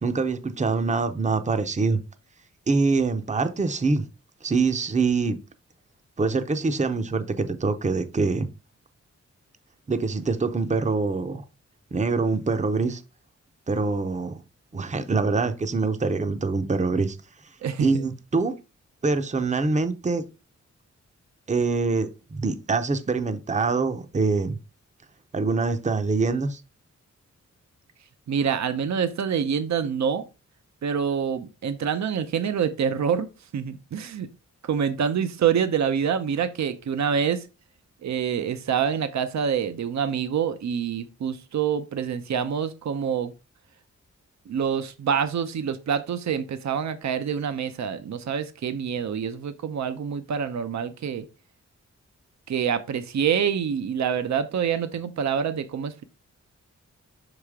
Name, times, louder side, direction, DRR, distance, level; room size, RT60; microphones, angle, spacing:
voice 1, 0.0-2.0 2.7-4.0 4.4-5.4 6.2-8.5 9.9-11.4 11.9-13.0 13.7-14.4 14.7-17.2 17.8-18.5 19.0-20.2 21.5-24.6 25.3-26.6, right 4 dB, 25° right, 0.7 m, -24 dB
voice 2, 28.3-30.2 30.8-33.3 33.5-34.3 34.6-37.5 38.0-43.3 44.5-51.2 52.5-56.0, right 7 dB, 70° right, 0.6 m, -26 dB
5.7 x 4.9 x 3.6 m
cardioid pair, 75°, 29 cm